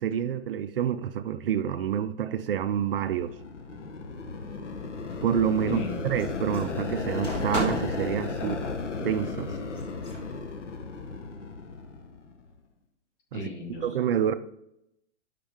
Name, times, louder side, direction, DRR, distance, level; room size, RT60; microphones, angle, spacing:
voice 1, 0.0-3.3 5.2-8.6 9.0-9.5 13.3-13.4 13.8-14.3, right 9 dB, 50° right, 0.5 m, -28 dB
sound 1, 2.7-12.5, left 4 dB, 90° left, 1.3 m, -35 dB
sound 2, 4.8-5.4 6.2-8.1 9.7-10.3, equal, 15° left, 1.8 m, -35 dB
voice 2, 5.6-6.2 8.4-8.8 13.3-13.9, left 3 dB, 45° left, 2.3 m, -35 dB
9.9 x 5.8 x 3.6 m
hypercardioid pair, 140°, 35 cm